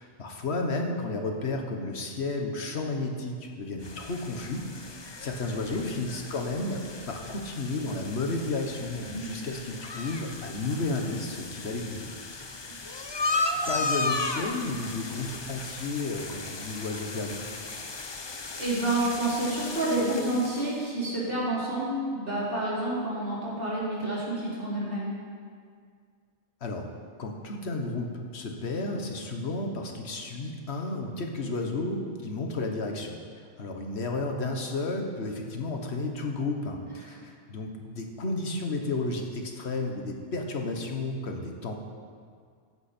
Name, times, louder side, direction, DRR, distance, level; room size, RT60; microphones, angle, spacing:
voice 1, 0.0-4.7 5.2-12.1 13.5-17.4 26.6-26.9 27.2-41.7, left 2 dB, 65° left, 3 dB, 1.5 m, -32 dB
sound 1, 3.8-20.8, left 3 dB, 30° left, 0.6 m, -36 dB
voice 2, 18.6-25.1 37.0-37.1, right 1 dB, 50° right, -7 dB, 3.8 m, -29 dB
15.0 x 10.5 x 4.4 m, 2.1 s
omnidirectional pair, 1.2 m